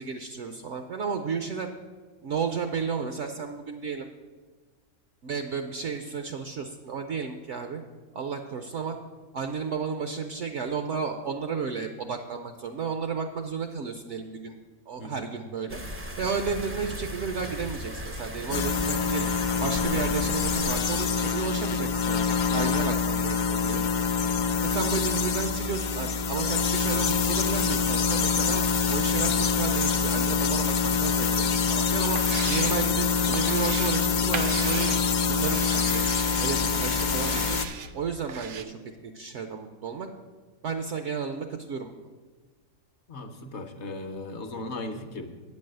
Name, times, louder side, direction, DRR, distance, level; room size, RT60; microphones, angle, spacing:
voice 1, 0.0-1.7 2.2-4.1 5.2-7.8 8.1-9.0 9.3-14.6 14.9-15.8 16.2-19.3 19.6-22.2 22.5-23.8 24.6-28.6 28.9-35.0 35.3-36.0 36.4-37.6 37.9-40.1 40.6-41.9, right 5 dB, 65° right, 6 dB, 0.8 m, -33 dB
voice 2, 14.9-15.3 43.1-45.3, left 2 dB, 55° left, 7 dB, 1.0 m, -37 dB
sound 1, 15.7-20.8, left 1 dB, 15° right, 0.4 m, -37 dB
sound 2, 18.5-37.6, left 5 dB, 75° left, 0.4 m, -25 dB
sound 3, 32.1-38.6, right 7 dB, 85° right, 0.4 m, -37 dB
8.8 x 5.4 x 7.7 m, 1.4 s
omnidirectional pair, 1.5 m